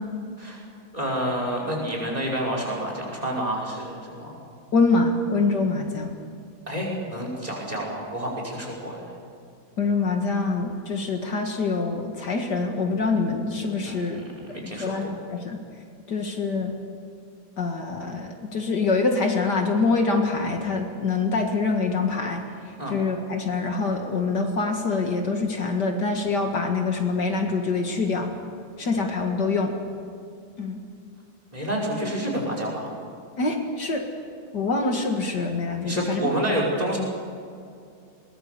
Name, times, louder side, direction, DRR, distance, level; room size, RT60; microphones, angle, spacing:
voice 1, 0.9-4.4 6.7-9.1 13.8-14.1 14.5-15.1 22.8-22.9 31.5-32.9 35.8-37.0, right 1 dB, 20° right, -1 dB, 5.4 m, -29 dB
voice 2, 4.7-6.1 9.8-14.2 14.6-15.6 16.1-16.7 17.6-22.4 22.9-28.3 28.8-29.7 30.6-30.8 33.4-34.0 34.5-36.3, left 3 dB, 60° left, 3 dB, 2.4 m, -25 dB
22.0 x 20.5 x 6.9 m, 2.4 s
omnidirectional pair, 2.1 m